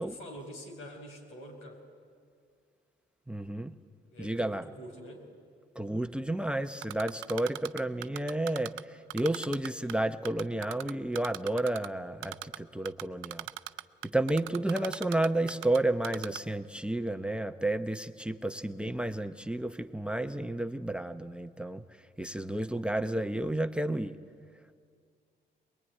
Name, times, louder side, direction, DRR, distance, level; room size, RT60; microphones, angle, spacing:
voice 1, 0.0-1.8 4.1-5.3 14.7-15.0, equal, 85° left, 2 dB, 4.9 m, -46 dB
voice 2, 3.3-3.7 4.2-4.7 5.8-13.5 14.0-21.8 22.2-24.2, right 1 dB, 5° right, 10 dB, 0.8 m, -31 dB
Typing, 6.8-8.8 9.1-9.9 10.3-11.9 12.2-12.6 12.9-15.8 16.0-16.4, right 14 dB, 80° right, 0.6 m, -38 dB
23.0 x 21.5 x 10.0 m, 2.1 s
cardioid pair, 90°, 20 cm